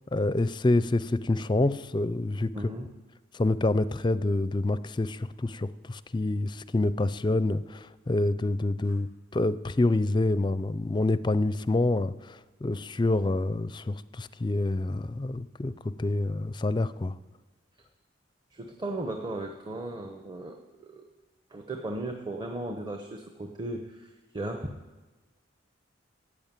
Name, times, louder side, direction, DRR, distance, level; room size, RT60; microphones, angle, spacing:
voice 1, 0.1-2.5 3.3-17.1, left 2 dB, 25° left, 16 dB, 0.5 m, -27 dB
voice 2, 2.5-2.9 8.9-9.0 18.5-21.1 21.5-24.7, right 1 dB, 25° right, 4 dB, 1.0 m, -36 dB
15.0 x 8.8 x 9.0 m, 1.2 s
head